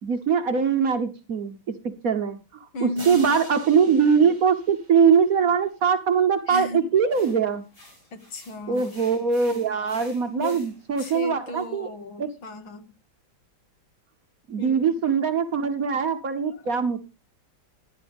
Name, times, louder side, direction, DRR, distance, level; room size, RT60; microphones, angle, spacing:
voice 1, 0.0-7.6 8.7-11.9 12.2-12.4 14.5-17.0, right 6 dB, 50° right, 8 dB, 1.2 m, -22 dB
voice 2, 2.7-3.3 6.5-6.8 8.1-8.9 10.3-10.6 11.0-12.9 14.6-14.9, left 2 dB, 75° left, 7 dB, 2.6 m, -34 dB
sound 1, 3.0-5.8, right 3 dB, 20° right, 1.8 m, -44 dB
sound 2, 7.1-11.7, left 1 dB, 45° left, 5.5 m, -50 dB
15.0 x 10.5 x 3.5 m, 0.29 s
omnidirectional pair, 2.2 m